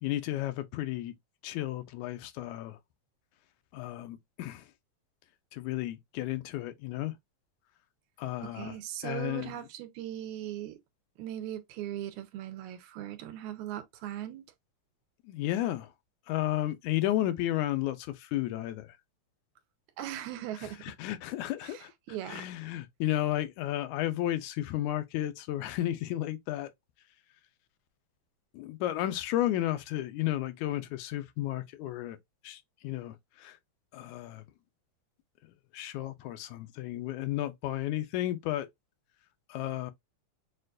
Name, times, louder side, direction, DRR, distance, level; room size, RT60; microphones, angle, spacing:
voice 1, 0.0-1.1 1.4-2.8 3.7-4.7 5.5-7.1 8.2-8.8 9.0-9.5 15.2-15.9 16.3-19.0 20.8-21.9 22.3-26.7 28.5-32.2 32.4-33.6 33.9-34.4 35.7-38.7 39.5-39.9, left 14 dB, 85° left, 2.0 m, -33 dB
voice 2, 8.4-10.8 11.2-14.4 20.0-20.8 21.6-22.5, right 12 dB, 90° right, 2.1 m, -39 dB
6.5 x 2.3 x 2.4 m
omnidirectional pair, 3.4 m